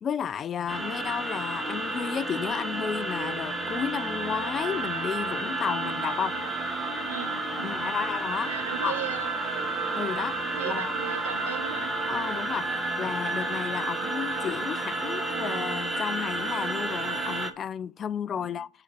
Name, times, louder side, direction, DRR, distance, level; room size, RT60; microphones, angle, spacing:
voice 1, 0.0-6.3 7.6-8.5 8.8-9.0 9.9-10.4 10.6-10.9 12.1-12.7 13.0-18.7, left 8 dB, 35° left, 0.4 m, -32 dB
sound 1, 0.7-17.5, right 2 dB, 10° right, 1.4 m, -31 dB
voice 2, 7.1-8.0 8.4-9.7 10.4-11.9 13.8-14.0 18.3-18.6, right 8 dB, 85° right, 1.5 m, -38 dB
10.0 x 4.2 x 6.2 m
hypercardioid pair, 90°, 0 cm